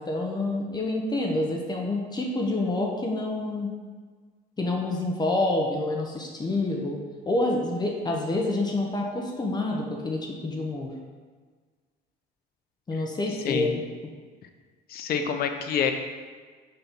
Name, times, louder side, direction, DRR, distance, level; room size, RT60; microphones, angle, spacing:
voice 1, 0.0-3.7 4.6-7.0 7.3-10.9 12.9-13.8, left 2 dB, 25° left, 0 dB, 0.9 m, -27 dB
voice 2, 13.4-13.7 14.9-15.9, left 7 dB, 65° left, 7 dB, 0.7 m, -27 dB
5.3 x 4.1 x 6.1 m, 1.5 s
cardioid pair, 110°, 17 cm